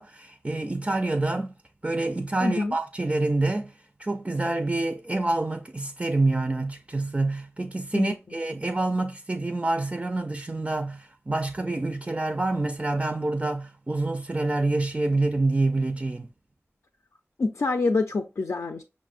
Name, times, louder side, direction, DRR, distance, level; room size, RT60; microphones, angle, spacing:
voice 1, 0.0-1.5 1.8-3.7 4.0-16.3, right 2 dB, 25° right, 0.3 m, -27 dB
voice 2, 2.4-2.8 7.9-8.2 17.4-18.8, left 3 dB, 75° left, 0.4 m, -26 dB
5.7 x 2.0 x 2.4 m
wide cardioid pair, 50°, 5 cm